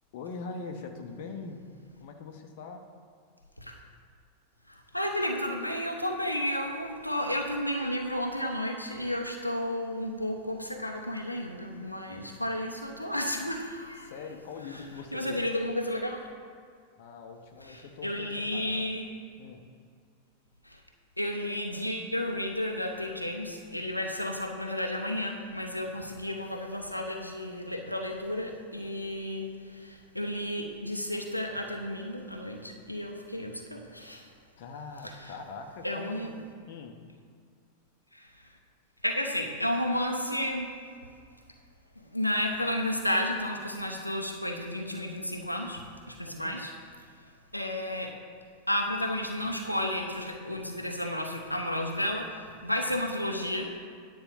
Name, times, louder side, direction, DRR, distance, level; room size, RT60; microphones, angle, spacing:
voice 1, 0.1-1.6 2.0-2.8 14.0-15.5 16.9-18.9 19.4-19.7 34.6-36.3 36.6-37.0 46.3-46.5, left 4 dB, 50° left, 4 dB, 1.0 m, -42 dB
voice 2, 4.7-14.1 15.1-16.2 17.6-19.0 20.7-20.8 21.2-34.3 35.8-36.3 38.1-38.3 39.0-40.7 42.1-45.8 46.1-46.7 47.5-48.1 48.7-53.7, left 1 dB, 90° left, 1 dB, 0.9 m, -32 dB
10.0 x 4.6 x 7.7 m, 2.1 s
figure-of-eight pair, 90°, 0 cm